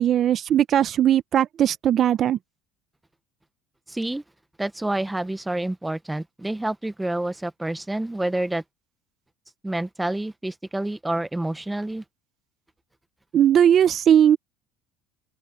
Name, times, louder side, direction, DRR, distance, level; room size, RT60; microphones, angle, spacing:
voice 1, 0.0-2.4 13.3-14.4, right 10 dB, 45° right, 0.7 m, -18 dB
voice 2, 3.9-4.2 4.6-8.6 9.6-12.0, right 1 dB, 5° right, 0.9 m, -28 dB
open air
cardioid pair, 115°, 0 cm